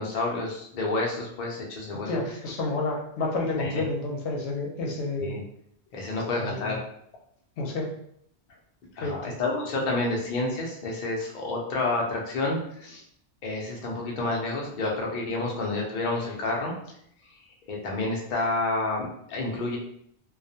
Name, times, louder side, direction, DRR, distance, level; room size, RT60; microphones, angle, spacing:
voice 1, 0.0-2.1 3.6-3.8 5.2-5.4 5.9-6.8 9.0-13.0 13.4-16.7 17.7-19.8, left 2 dB, 55° left, -1 dB, 0.7 m, -29 dB
voice 2, 2.1-5.4 6.4-6.8 7.6-7.9 9.0-9.3, left 2 dB, 85° left, 0 dB, 0.9 m, -30 dB
2.3 x 2.1 x 2.6 m, 0.70 s
omnidirectional pair, 1.1 m